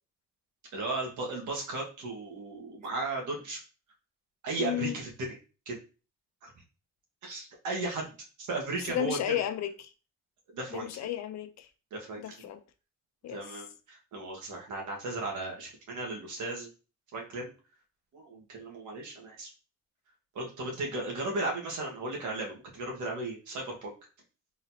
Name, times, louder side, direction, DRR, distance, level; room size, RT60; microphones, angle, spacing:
voice 1, 0.7-3.6 4.4-5.4 5.7-5.8 6.4-6.5 7.2-8.1 8.4-9.4 10.5-10.9 11.9-12.5 13.3-16.7 17.1-17.5 18.1-19.5 20.4-23.9, right 2 dB, 75° right, 1.7 m, -35 dB
voice 2, 4.6-5.0 8.9-9.9 10.7-11.7 12.2-12.6 13.2-13.4, left 11 dB, 65° left, 0.7 m, -33 dB
4.1 x 3.9 x 2.8 m
cardioid pair, 90°, 30 cm